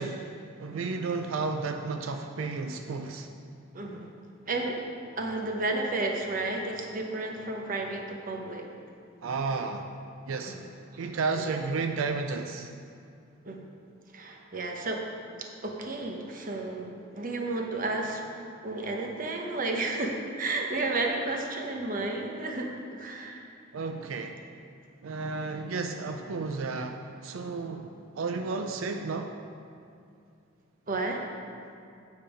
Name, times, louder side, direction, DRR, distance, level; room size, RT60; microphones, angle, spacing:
voice 1, 0.0-3.3 9.2-9.9 10.3-10.6 11.0-12.7 23.7-24.4 25.0-29.3, right 4 dB, 90° right, 5 dB, 0.4 m, -32 dB
voice 2, 3.7-4.1 4.5-4.8 5.1-8.7 10.4-10.7 10.9-11.1 11.4-11.6 13.4-13.6 14.1-15.0 15.4-18.2 18.6-22.7 23.0-23.4 30.9-31.3, right 2 dB, 45° right, 1 dB, 0.9 m, -32 dB
8.9 x 5.3 x 5.2 m, 2.5 s
head